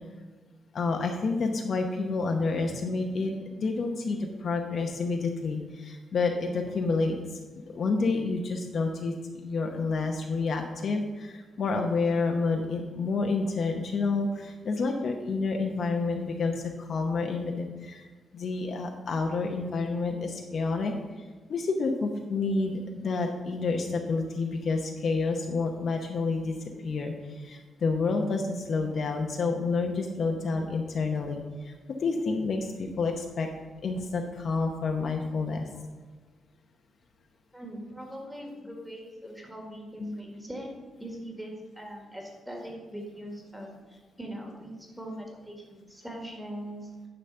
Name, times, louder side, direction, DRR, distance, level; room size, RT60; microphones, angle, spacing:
voice 1, 0.7-18.0 18.3-20.9 21.5-27.1 27.4-31.7 32.0-33.5 33.8-35.7 40.0-40.1, left 3 dB, 45° left, 3 dB, 0.8 m, -29 dB
voice 2, 37.5-40.7 41.0-46.9, equal, 5° right, 0 dB, 1.8 m, -41 dB
10.0 x 4.0 x 6.9 m, 1.3 s
wide cardioid pair, 155°, 0 cm